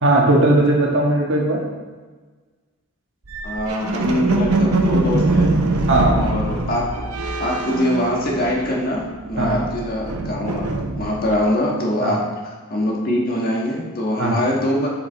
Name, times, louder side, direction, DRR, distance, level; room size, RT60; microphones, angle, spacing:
voice 1, 0.0-1.6 5.9-6.2 9.4-9.6 12.0-12.1 14.2-14.4, right 1 dB, 55° right, -1 dB, 1.6 m, -17 dB
sound 1, 3.3-8.9 9.2-11.4, right 2 dB, 85° right, 0.9 m, -22 dB
voice 2, 3.4-5.5 6.2-7.0 7.4-10.7 11.0-14.9, left 1 dB, 40° left, -2 dB, 1.5 m, -23 dB
8.2 x 6.0 x 4.5 m, 1.4 s
head